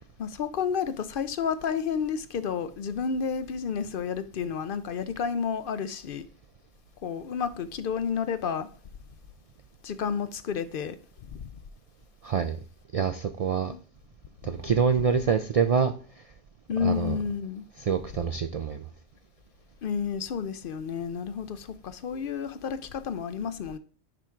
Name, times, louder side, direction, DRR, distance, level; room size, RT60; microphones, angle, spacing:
voice 1, 0.2-6.2 7.0-8.7 9.8-11.0 11.2-11.5 13.7-13.8 16.7-17.6 19.8-23.8, left 6 dB, 60° left, 0.7 m, -31 dB
voice 2, 12.2-12.6 12.9-13.7 14.4-15.9 16.8-17.2 17.8-18.8, right 6 dB, 60° right, 0.4 m, -26 dB
9.9 x 3.6 x 4.5 m
omnidirectional pair, 1.1 m